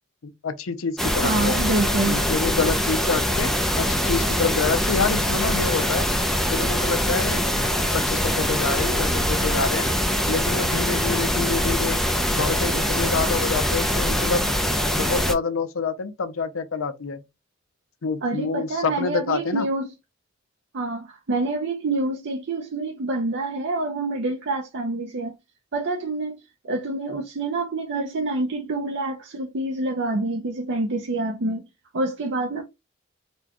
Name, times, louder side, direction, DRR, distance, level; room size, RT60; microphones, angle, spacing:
voice 1, 0.2-1.6 2.1-3.5 3.8-6.1 6.5-7.7 7.9-9.9 10.3-12.0 12.3-14.4 14.9-17.2 18.0-19.7, left 4 dB, 85° left, 0.6 m, -27 dB
sound 1, 1.0-15.3, equal, ahead, 0.5 m, -23 dB
voice 2, 1.2-2.2 18.2-19.9 20.7-25.3 25.7-26.4 26.6-31.6 31.9-32.6, right 2 dB, 60° right, 0.6 m, -26 dB
4.3 x 2.2 x 2.8 m
head